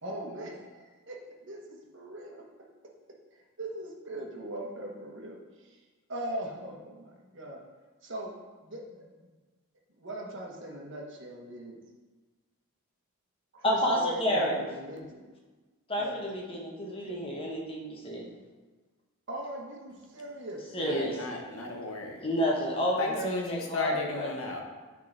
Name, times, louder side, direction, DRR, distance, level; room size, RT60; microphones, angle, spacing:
voice 1, 0.0-2.4 3.6-5.8 6.1-7.6 8.0-8.3 8.6-9.0 10.0-11.8 13.5-15.2 16.0-16.2 17.0-17.1 19.3-20.6 21.1-21.8, right 1 dB, 55° right, -1 dB, 1.2 m, -40 dB
voice 2, 13.6-14.6 15.9-18.2 20.7-21.2 22.2-24.3, equal, 25° left, -2 dB, 1.1 m, -30 dB
voice 3, 20.8-22.2 23.0-24.6, left 2 dB, 65° left, 1 dB, 1.1 m, -34 dB
9.3 x 3.8 x 3.9 m, 1.3 s
head